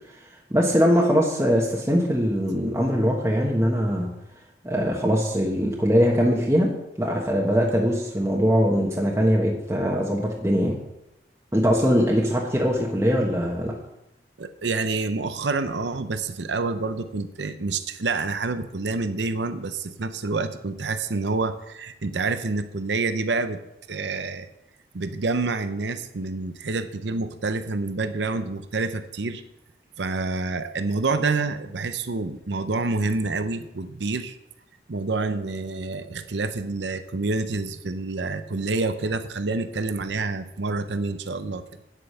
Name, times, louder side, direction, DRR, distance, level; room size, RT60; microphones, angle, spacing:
voice 1, 0.5-4.1 4.6-10.7 11.5-13.7, equal, 15° right, -2 dB, 1.1 m, -22 dB
voice 2, 14.4-23.6 23.9-24.5 24.9-29.4 30.0-34.4 34.9-41.6, right 3 dB, 80° right, 10 dB, 0.7 m, -27 dB
9.2 x 8.1 x 5.6 m, 0.88 s
head